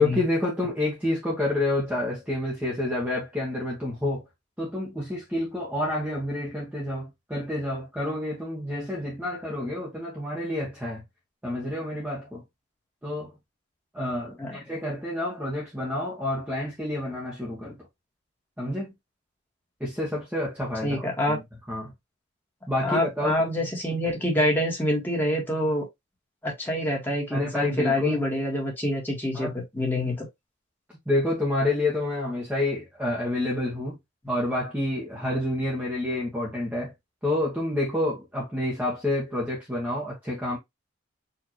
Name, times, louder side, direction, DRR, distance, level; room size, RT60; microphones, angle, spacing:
voice 1, 0.0-4.2 4.6-11.0 11.4-12.4 13.0-13.3 13.9-17.8 18.6-18.9 19.8-21.4 21.7-21.9 22.7-23.5 27.3-28.2 29.3-29.5 31.1-34.0 34.3-36.9 37.2-40.6, left 1 dB, 10° right, 1.2 m, -28 dB
voice 2, 20.8-21.4 22.8-25.8 26.4-30.3, left 1 dB, 10° left, 1.7 m, -26 dB
4.6 x 2.8 x 3.0 m
head